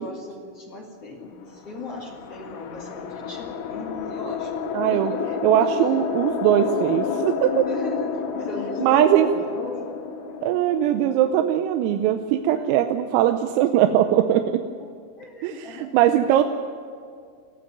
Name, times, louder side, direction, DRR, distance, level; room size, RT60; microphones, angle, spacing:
voice 1, 0.0-4.6 4.9-5.6 7.7-10.5 11.1-11.6 12.1-12.2 12.5-12.9 15.0-16.0, left 2 dB, 45° left, -2 dB, 2.3 m, -37 dB
sound 1, 1.6-12.0, left 6 dB, 90° left, 4.4 m, -30 dB
voice 2, 4.7-5.1 5.4-7.7 8.8-9.3 10.4-14.5 15.4-15.5 15.9-16.4, right 11 dB, 90° right, 6 dB, 3.5 m, -20 dB
20.5 x 14.0 x 9.4 m, 2.2 s
omnidirectional pair, 5.9 m